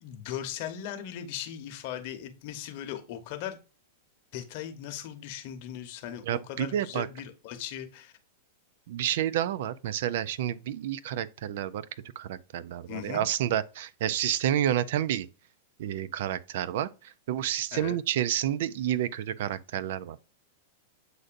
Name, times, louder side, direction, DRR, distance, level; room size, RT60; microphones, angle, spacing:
voice 1, 0.0-3.6 4.3-8.1 12.9-13.2 17.7-18.0, left 10 dB, 55° left, 0.9 m, -38 dB
voice 2, 6.3-7.1 8.9-11.8 12.2-15.3 15.8-20.2, right 11 dB, 65° right, 0.3 m, -29 dB
7.7 x 2.6 x 2.5 m
hypercardioid pair, 135°, 0 cm